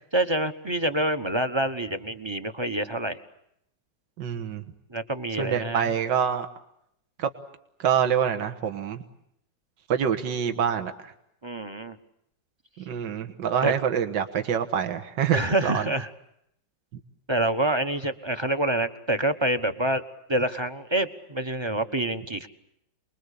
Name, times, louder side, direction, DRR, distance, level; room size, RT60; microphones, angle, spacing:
voice 1, 0.1-3.2 4.9-5.9 11.4-12.0 13.6-13.7 15.3-16.1 17.3-20.0 20.3-22.5, right 1 dB, 20° right, 9 dB, 0.9 m, -27 dB
voice 2, 4.2-4.6 5.4-6.5 7.2-7.3 7.8-9.0 9.9-11.1 12.8-15.8, right 8 dB, 75° right, 7 dB, 2.1 m, -26 dB
28.5 x 21.5 x 8.4 m, 0.77 s
omnidirectional pair, 2.0 m